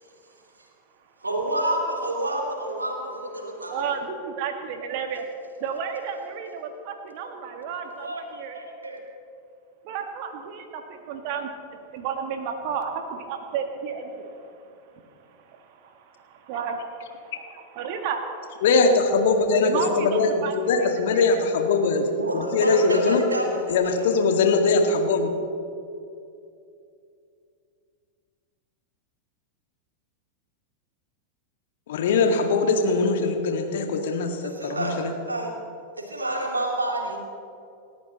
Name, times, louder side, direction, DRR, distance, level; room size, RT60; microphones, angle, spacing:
voice 1, 1.2-4.0 8.0-9.0 22.1-24.1 34.4-35.5 36.0-37.2, right 1 dB, 80° right, -2 dB, 3.5 m, -29 dB
voice 2, 4.4-5.3 5.6-8.6 9.8-11.5 11.9-14.2 16.5-16.8 17.2-18.2 19.6-20.9 21.1-21.4, right 7 dB, 45° right, 5 dB, 1.6 m, -32 dB
voice 3, 18.6-22.0 22.3-23.2 23.7-25.3 31.9-35.1, left 4 dB, 55° left, 4 dB, 1.9 m, -21 dB
29.0 x 14.0 x 3.1 m, 2.6 s
figure-of-eight pair, 90°, 0 cm